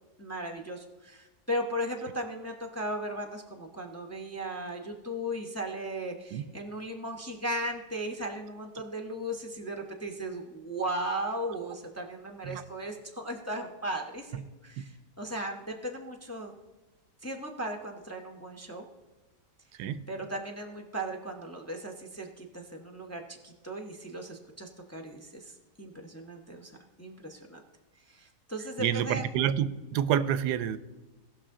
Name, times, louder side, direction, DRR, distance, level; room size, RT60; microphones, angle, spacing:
voice 1, 0.2-16.5 17.2-18.8 20.1-26.7 27.0-27.6 28.1-29.3, right 1 dB, 10° left, 3 dB, 0.8 m, -37 dB
voice 2, 28.8-30.8, right 9 dB, 85° right, 14 dB, 1.2 m, -28 dB
18.0 x 6.2 x 3.7 m, 1.1 s
omnidirectional pair, 1.7 m